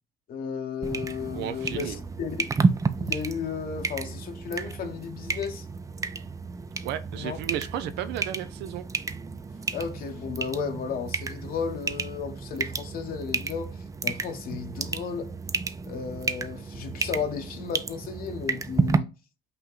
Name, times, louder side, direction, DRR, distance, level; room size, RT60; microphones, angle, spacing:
voice 1, 0.3-2.5 3.0-5.6 7.1-7.4 9.7-13.7 14.0-15.3 15.9-19.1, left 6 dB, 60° left, 0.9 m, -34 dB
sound 1, 0.8-19.0, right 4 dB, 20° right, 0.4 m, -31 dB
voice 2, 1.3-2.0 6.8-8.8, right 11 dB, 85° right, 0.6 m, -33 dB
5.7 x 2.2 x 3.8 m
cardioid pair, 110°, 17 cm